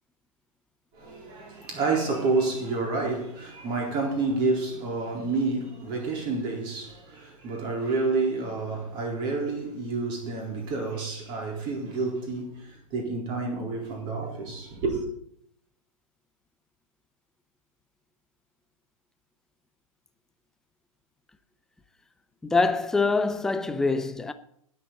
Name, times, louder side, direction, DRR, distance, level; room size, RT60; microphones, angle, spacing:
voice 1, 0.9-15.0, right 3 dB, 25° right, 4.0 m, -29 dB
voice 2, 22.4-24.3, left 3 dB, 5° left, 0.5 m, -24 dB
20.5 x 7.4 x 4.0 m
figure-of-eight pair, 120°, 18 cm